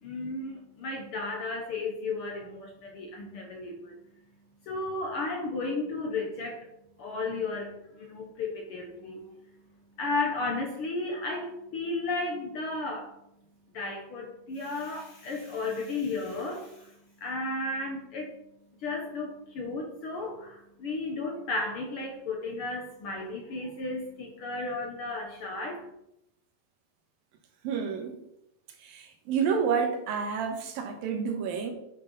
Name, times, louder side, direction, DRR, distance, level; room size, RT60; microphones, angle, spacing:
voice 1, 0.0-4.0 4.7-6.7 7.0-9.3 10.0-13.1 13.7-16.9 17.2-18.4 18.8-25.9, left 3 dB, 70° left, 2 dB, 1.3 m, -34 dB
voice 2, 27.6-28.1 28.8-31.7, right 6 dB, 80° right, 5 dB, 3.1 m, -29 dB
9.5 x 6.0 x 5.4 m, 0.84 s
omnidirectional pair, 4.0 m